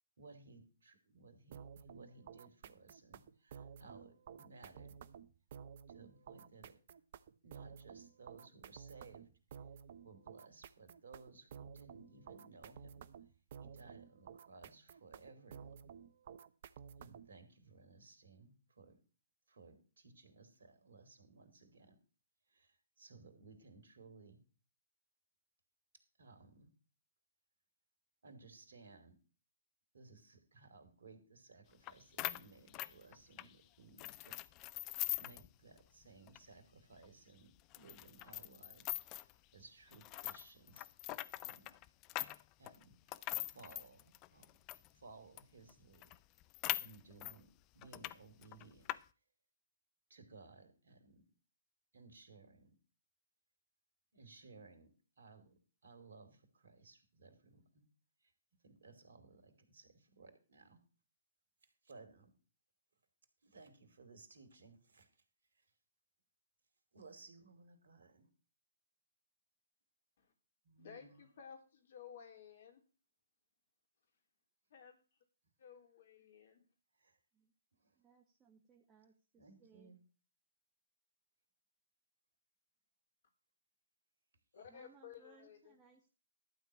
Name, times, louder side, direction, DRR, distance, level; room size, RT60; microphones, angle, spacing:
voice 1, 0.2-5.0 5.9-6.7 7.4-9.3 10.0-13.0 13.6-15.9 17.0-19.0 19.5-22.0 22.5-24.4 26.2-26.7 28.2-29.1 29.9-40.9 41.4-41.7 42.6-44.5 44.9-46.1 46.8-48.9 50.1-51.2 51.9-52.7 54.1-57.8 58.2-58.3 58.6-60.8 61.8-62.3 63.4-65.2 65.5-65.7 66.9-68.3 70.6-71.2 79.3-80.0, right 3 dB, 65° right, 7 dB, 3.0 m, -60 dB
sound 1, 1.5-17.4, right 7 dB, 50° right, 0.8 m, -53 dB
sound 2, 31.9-32.0 32.2-33.5 34.0-35.5 35.8-35.9 36.3-36.4 37.0-37.1 37.7-39.3 39.9-44.9 45.4-45.5 45.7-45.8 46.0-47.4 47.8-48.1 48.4-49.0, left 18 dB, 30° left, 0.5 m, -42 dB
voice 2, 70.8-72.8 74.0-74.2 74.7-75.0 75.6-76.6 84.5-85.8, left 7 dB, 55° left, 6 dB, 3.5 m, -55 dB
voice 3, 78.0-79.1 79.6-79.9 84.7-85.4 85.8-86.1, right 5 dB, 20° right, 1 dB, 1.5 m, -65 dB
12.0 x 4.5 x 8.4 m, 0.35 s
figure-of-eight pair, 125°, 0 cm